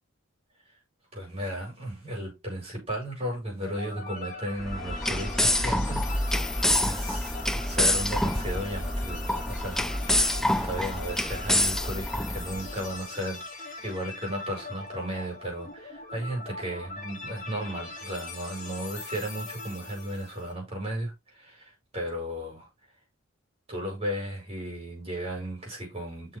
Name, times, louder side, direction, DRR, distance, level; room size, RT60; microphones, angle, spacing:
voice 1, 1.1-22.7 23.7-26.4, equal, 30° right, 5.3 m, -35 dB
sound 1, 3.6-20.5, left 4 dB, 35° left, 2.5 m, -41 dB
sound 2, 4.6-12.7, left 1 dB, ahead, 0.4 m, -27 dB
6.9 x 6.4 x 3.6 m
head